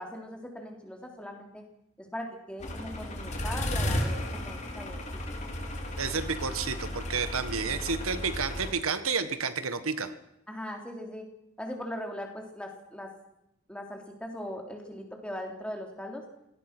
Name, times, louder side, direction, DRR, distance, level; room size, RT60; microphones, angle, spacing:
voice 1, 0.0-1.6 2.0-5.0 5.3-5.5 7.7-7.8 10.5-11.3 11.6-13.1 13.7-16.2, equal, 5° left, 2 dB, 3.4 m, -40 dB
sound 1, 2.6-8.7, left 1 dB, 35° left, 3.3 m, -34 dB
voice 2, 6.0-10.1, right 5 dB, 80° right, 11 dB, 1.6 m, -30 dB
25.5 x 18.0 x 6.1 m, 0.82 s
head